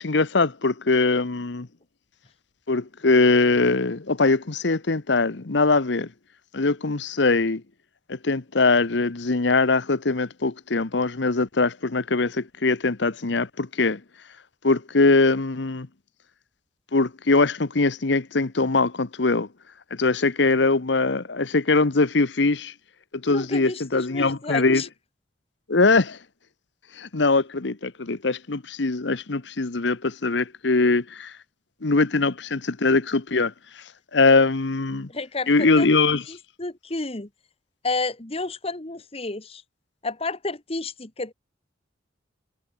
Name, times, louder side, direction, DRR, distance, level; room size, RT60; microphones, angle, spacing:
voice 1, 0.0-1.7 2.7-6.1 6.5-7.6 8.1-14.0 14.6-15.9 16.9-19.5 19.9-22.7 23.1-24.8 25.7-26.2 27.0-31.3 31.8-33.5 34.1-35.1 35.5-36.2, left 3 dB, 65° left, 1.0 m, -22 dB
voice 2, 23.3-24.9 35.1-35.9 36.3-37.3 37.8-39.6 40.0-41.3, left 3 dB, 30° left, 1.4 m, -31 dB
head